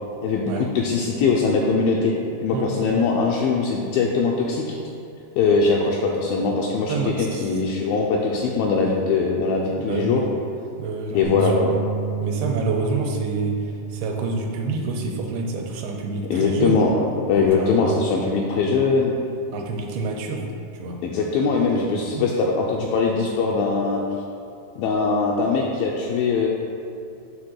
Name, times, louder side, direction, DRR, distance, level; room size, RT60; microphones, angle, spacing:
voice 1, 0.2-2.1 2.4-4.8 5.4-10.2 11.1-11.7 16.3-16.9 17.3-19.1 21.0-24.0 24.8-26.5, left 4 dB, 85° left, -2 dB, 2.1 m, -21 dB
voice 2, 2.5-3.1 6.9-7.5 9.8-10.3 10.8-11.5 12.2-16.8 17.3-18.0 19.5-20.5 20.7-21.0 22.1-22.3, right 3 dB, 80° right, 1 dB, 2.6 m, -28 dB
Bass guitar, 11.2-17.5, right 4 dB, 65° right, 1.5 m, -32 dB
7.4 x 3.7 x 6.3 m, 2.6 s
omnidirectional pair, 4.6 m